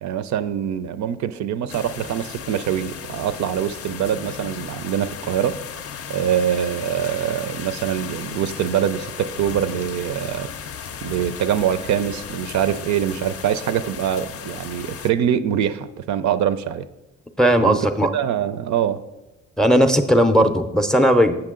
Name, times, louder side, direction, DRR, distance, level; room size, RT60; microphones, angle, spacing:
voice 1, 0.0-5.6 6.1-10.5 11.0-16.8 17.6-19.0, right 9 dB, 70° right, 13 dB, 0.4 m, -24 dB
sound 1, 1.7-15.1, left 7 dB, 50° left, 0.5 m, -35 dB
voice 2, 17.4-18.1 19.6-21.3, equal, ahead, 9 dB, 0.5 m, -16 dB
7.7 x 5.9 x 3.7 m, 1.0 s
cardioid pair, 90°, 30 cm